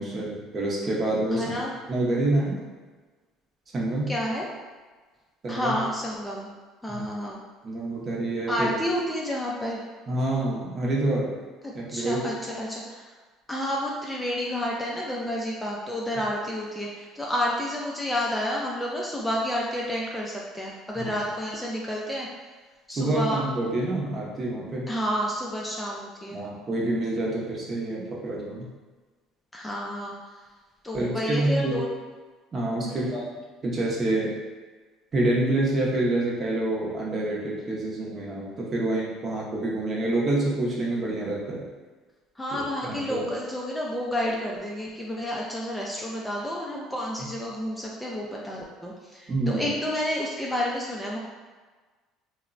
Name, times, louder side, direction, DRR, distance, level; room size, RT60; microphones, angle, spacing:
voice 1, 0.0-1.4 1.9-2.6 3.7-4.1 5.4-5.8 6.9-7.0 7.6-8.7 10.1-11.3 11.7-12.2 21.0-21.1 22.9-24.8 26.3-28.7 30.9-31.8 32.5-33.2 33.6-34.3 35.1-41.7 42.5-43.3 49.3-49.7, right 2 dB, 35° right, -4 dB, 0.7 m, -27 dB
voice 2, 1.3-1.7 4.1-4.5 5.5-6.5 6.8-7.4 8.5-9.8 11.6-13.1 13.5-22.3 22.9-23.4 24.9-26.4 29.5-30.1 30.8-31.9 32.8-33.2 42.4-51.2, equal, 5° left, -4 dB, 0.4 m, -30 dB
3.0 x 2.0 x 2.4 m, 1.4 s
supercardioid pair, 105°, 0 cm